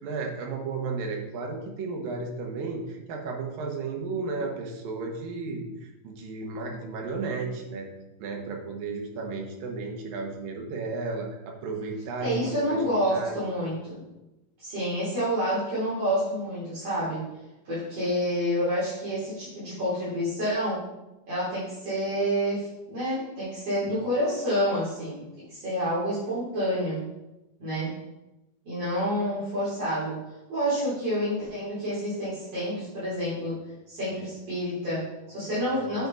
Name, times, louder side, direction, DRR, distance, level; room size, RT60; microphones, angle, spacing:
voice 1, 0.0-7.9 8.2-12.8 13.1-13.4, right 4 dB, 80° right, 1 dB, 3.1 m, -33 dB
voice 2, 12.2-14.1 14.6-17.2 17.6-20.8 21.3-27.0 27.6-27.9 28.6-30.2 30.5-33.5 33.9-36.1, equal, 45° right, -12 dB, 4.7 m, -28 dB
9.7 x 7.1 x 4.1 m, 0.99 s
omnidirectional pair, 4.0 m